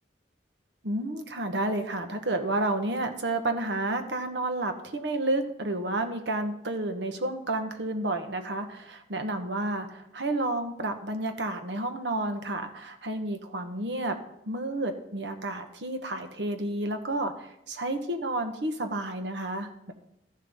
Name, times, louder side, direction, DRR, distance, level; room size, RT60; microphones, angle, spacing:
voice 1, 0.8-14.2 14.4-19.9, right 2 dB, 80° right, 6 dB, 1.4 m, -31 dB
13.5 x 11.0 x 3.8 m, 0.78 s
head